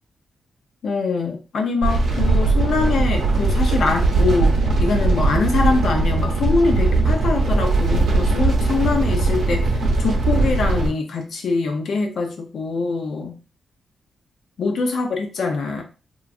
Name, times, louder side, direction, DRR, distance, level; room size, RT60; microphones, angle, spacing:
voice 1, 0.8-13.4 14.6-15.8, left 4 dB, 60° left, 4 dB, 0.6 m, -23 dB
sound 1, 1.8-10.9, right 3 dB, 85° right, 0.8 m, -19 dB
3.0 x 2.3 x 2.4 m, 0.33 s
wide cardioid pair, 170°, 0 cm